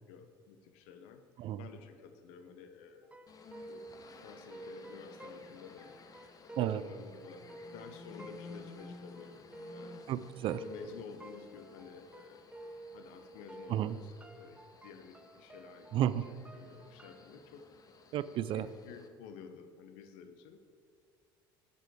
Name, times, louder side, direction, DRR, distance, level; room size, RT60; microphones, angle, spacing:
voice 1, 0.1-1.2 1.6-3.1 3.6-6.0 6.4-9.4 9.7-10.1 10.6-12.5 12.9-17.7 18.5-20.6, left 6 dB, 65° left, 8 dB, 0.8 m, -51 dB
sound 1, 3.0-13.2 13.5-17.3, right 2 dB, 10° right, 0.7 m, -51 dB
sound 2, 3.3-19.1, left 4 dB, 30° left, 0.7 m, -55 dB
voice 2, 10.1-10.6 13.7-14.0 15.9-16.2 18.1-18.7, right 11 dB, 50° right, 16 dB, 0.3 m, -32 dB
7.6 x 6.9 x 4.7 m, 2.1 s
hypercardioid pair, 60°, 12 cm